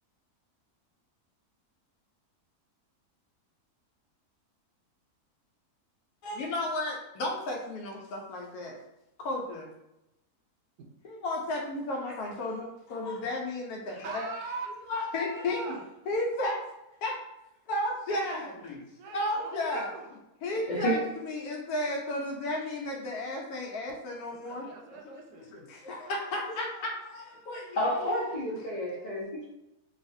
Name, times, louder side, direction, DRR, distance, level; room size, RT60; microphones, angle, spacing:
voice 1, 6.2-8.8 9.2-9.7 11.0-14.3 14.9-15.8 16.1-16.6 17.0-17.2 17.7-18.8 19.0-19.9 20.4-25.2 25.5-27.8 28.9-29.1, left 1 dB, 75° left, 0 dB, 1.0 m, -33 dB
voice 2, 14.0-14.7 15.3-15.8 18.1-20.1 24.3-25.6, right 4 dB, 80° right, 2 dB, 1.1 m, -42 dB
voice 3, 20.7-21.0 27.7-29.4, equal, 55° left, -8 dB, 0.5 m, -30 dB
3.2 x 2.4 x 2.6 m, 0.91 s
omnidirectional pair, 1.6 m